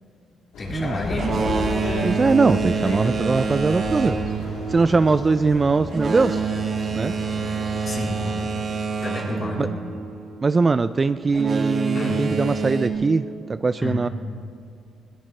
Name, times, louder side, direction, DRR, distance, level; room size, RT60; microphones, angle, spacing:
sound 1, 0.5-8.5, left 2 dB, 80° left, 3.2 m, -33 dB
voice 1, 0.6-1.3 7.4-8.2 9.0-9.7 11.9-12.2 13.8-14.0, left 2 dB, 35° left, -3 dB, 3.8 m, -30 dB
Boat Water vehicle, 1.1-10.5 11.3-12.9, right 5 dB, 50° right, 1.6 m, -27 dB
voice 2, 2.0-4.2 4.7-6.4 7.0-7.2 9.6-9.7 10.4-14.1, right 4 dB, 30° right, 12 dB, 0.4 m, -21 dB
21.0 x 17.5 x 3.3 m, 2.4 s
cardioid pair, 90°, 0 cm